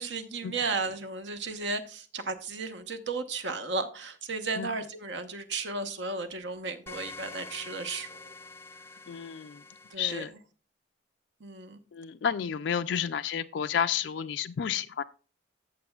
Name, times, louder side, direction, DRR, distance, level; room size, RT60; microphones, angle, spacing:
voice 1, 0.0-8.3 9.9-10.2 11.4-11.8, right 3 dB, 75° right, 1.0 m, -34 dB
sound 1, 6.9-9.9, left 3 dB, 10° left, 0.6 m, -46 dB
voice 2, 9.1-9.6 10.0-10.3 11.9-15.0, left 8 dB, 70° left, 0.3 m, -31 dB
14.5 x 6.8 x 2.3 m
head